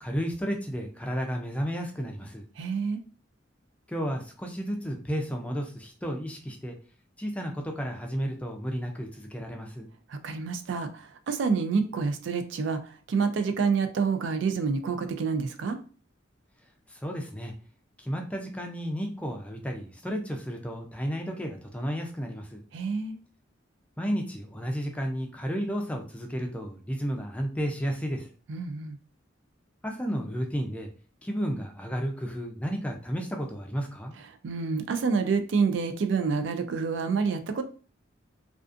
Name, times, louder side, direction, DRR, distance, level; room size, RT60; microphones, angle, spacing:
voice 1, 0.0-2.4 3.9-6.7 7.2-9.9 16.9-17.5 18.0-22.6 24.0-28.3 29.8-30.9 31.2-34.1, equal, 5° left, 2 dB, 0.4 m, -32 dB
voice 2, 2.6-3.0 10.1-15.8 22.7-23.2 28.5-29.0 34.4-37.6, right 5 dB, 70° right, 9 dB, 0.4 m, -28 dB
2.4 x 2.4 x 2.4 m, 0.39 s
head